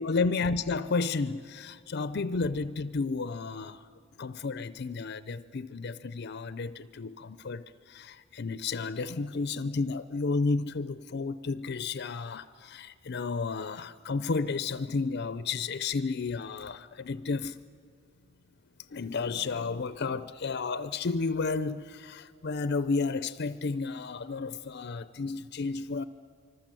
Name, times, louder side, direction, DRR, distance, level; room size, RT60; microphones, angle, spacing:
voice 1, 0.0-3.9 4.2-17.6 18.9-26.0, left 4 dB, 55° left, 0.5 m, -32 dB
25.5 x 25.0 x 7.6 m
head